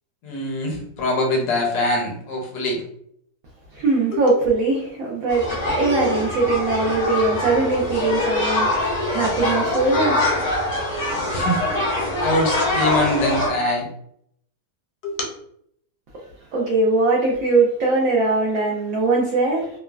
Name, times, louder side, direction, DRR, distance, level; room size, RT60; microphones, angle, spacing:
voice 1, 0.2-2.8 4.1-4.2 11.3-11.6 12.2-13.9 15.0-15.2, left 1 dB, 70° left, 0 dB, 1.3 m, -23 dB
voice 2, 3.7-10.2 16.5-19.7, right 3 dB, 65° right, -3 dB, 0.9 m, -21 dB
sound 1, 5.3-13.5, left 1 dB, 40° left, 0.5 m, -23 dB
3.0 x 2.2 x 2.3 m, 0.70 s
omnidirectional pair, 1.8 m